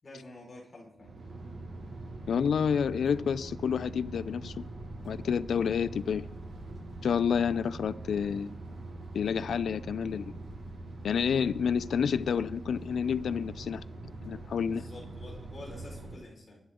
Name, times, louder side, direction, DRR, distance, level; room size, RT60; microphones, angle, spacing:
voice 1, 0.0-1.2 14.7-16.6, left 1 dB, 30° left, 4.9 m, -48 dB
sound 1, 1.0-16.2, right 2 dB, 85° right, 6.4 m, -43 dB
voice 2, 2.3-4.7 5.1-6.3 7.0-8.5 9.1-10.3 11.0-13.8 14.2-14.9, left 7 dB, 90° left, 0.5 m, -29 dB
24.5 x 11.5 x 3.8 m
wide cardioid pair, 175°, 0 cm